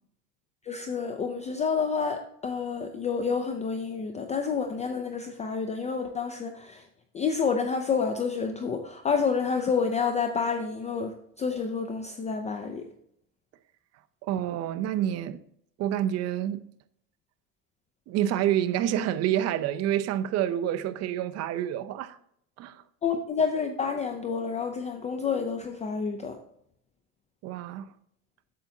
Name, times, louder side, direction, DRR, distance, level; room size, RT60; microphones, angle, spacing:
voice 1, 0.6-6.8 7.1-12.9 23.0-26.4, left 5 dB, 20° left, 0.4 m, -29 dB
voice 2, 14.2-15.4 15.8-16.6 18.1-22.2 22.6-22.8 27.4-27.9, right 11 dB, 40° right, 0.5 m, -28 dB
8.6 x 6.9 x 2.7 m
cardioid pair, 140°, 39 cm